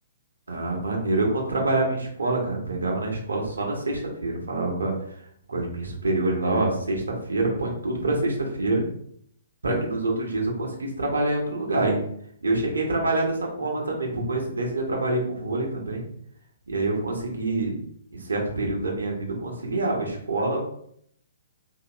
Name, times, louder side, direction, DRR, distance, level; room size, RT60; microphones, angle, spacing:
voice 1, 0.5-4.9 5.5-7.0 7.3-8.8 9.6-12.0 12.4-16.0 16.7-17.7 18.1-20.6, right 2 dB, 75° right, 0 dB, 1.1 m, -26 dB
4.8 x 3.0 x 3.0 m, 0.67 s
figure-of-eight pair, 120°, 0 cm